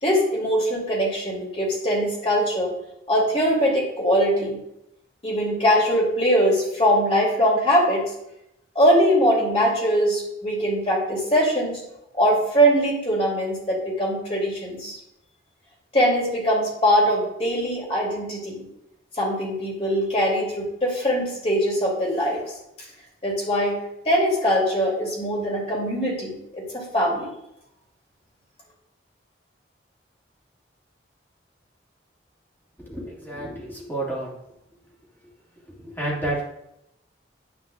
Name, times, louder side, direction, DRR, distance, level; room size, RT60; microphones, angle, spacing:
voice 1, 0.0-2.7 3.1-4.6 5.2-8.1 8.7-11.8 12.2-15.0 15.9-18.6 19.1-22.4 23.2-27.3, equal, 35° left, -3 dB, 2.7 m, -22 dB
voice 2, 32.8-34.3 35.7-36.4, right 1 dB, 10° left, -5 dB, 2.1 m, -30 dB
9.5 x 7.7 x 2.4 m, 0.82 s
head